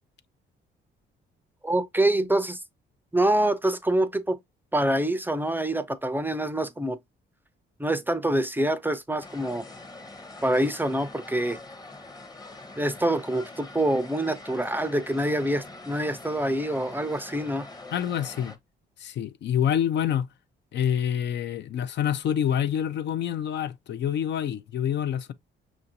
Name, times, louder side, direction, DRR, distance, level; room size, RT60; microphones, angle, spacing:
voice 1, 1.6-2.6 3.1-4.4 4.7-7.0 7.8-9.7 10.4-11.6 12.8-17.7, right 1 dB, 10° right, 0.5 m, -26 dB
sound 1, 9.2-18.6, left 2 dB, 20° left, 0.8 m, -44 dB
voice 2, 17.9-18.5 19.0-20.3 20.7-25.3, left 9 dB, 60° left, 0.5 m, -27 dB
5.8 x 2.5 x 2.7 m
cardioid pair, 90°, 20 cm